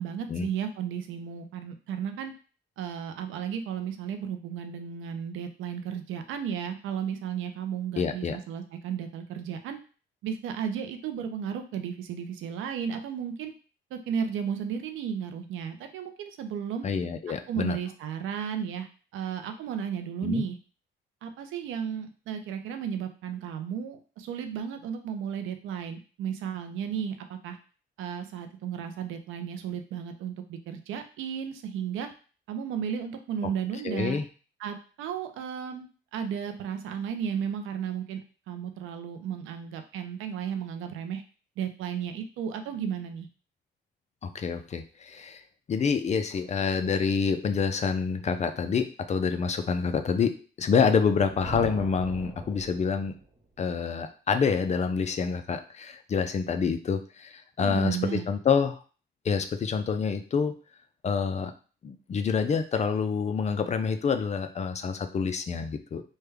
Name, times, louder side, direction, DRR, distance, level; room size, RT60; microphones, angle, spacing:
voice 1, 0.0-2.3 2.8-9.8 10.2-13.5 13.9-16.9 17.5-18.9 19.1-20.6 21.2-27.6 28.0-32.1 32.5-34.2 34.6-38.2 38.5-41.2 41.6-43.3 57.6-58.3, right 8 dB, 85° right, 7 dB, 0.5 m, -34 dB
voice 2, 8.0-8.4 16.8-17.8 20.2-20.4 33.8-34.2 44.2-45.4 45.7-50.3 50.6-53.1 53.6-58.8 59.2-60.5 61.0-61.5 61.8-66.0, left 6 dB, 35° left, 8 dB, 0.4 m, -27 dB
Thunder, 51.1-53.3, right 1 dB, 25° right, 0.8 m, -41 dB
3.3 x 2.2 x 3.3 m, 0.37 s
cardioid pair, 90°, 20 cm